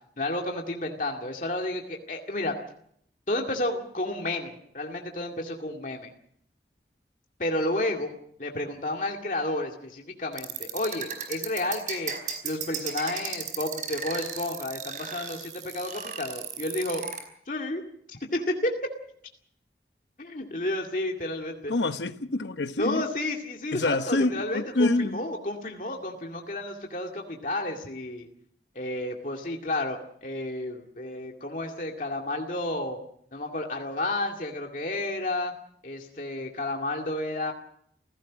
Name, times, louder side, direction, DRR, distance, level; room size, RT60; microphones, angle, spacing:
voice 1, 0.2-2.6 3.3-6.1 7.4-8.1 8.4-12.1 12.4-17.0 17.5-17.8 18.1-18.9 20.2-21.7 22.8-28.3 28.8-33.0 33.3-35.5 35.8-37.5, left 1 dB, 45° left, 2.2 m, -31 dB
sound 1, 10.3-17.2, right 7 dB, 45° right, 4.9 m, -35 dB
voice 2, 21.7-23.0 23.7-25.3, left 2 dB, 85° left, 1.0 m, -26 dB
28.5 x 17.0 x 6.2 m
head